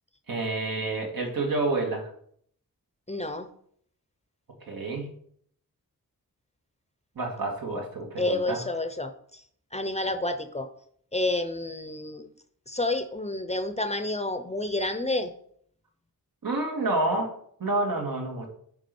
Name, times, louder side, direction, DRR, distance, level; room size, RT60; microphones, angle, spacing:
voice 1, 0.3-2.1 4.6-5.2 7.2-8.6 16.4-18.5, right 2 dB, 75° right, 1 dB, 2.2 m, -29 dB
voice 2, 3.1-3.5 8.2-9.4 9.7-10.7 11.1-12.3 12.7-15.3, left 2 dB, 20° left, 9 dB, 0.7 m, -29 dB
9.5 x 4.8 x 5.3 m, 0.64 s
wide cardioid pair, 130°, 35 cm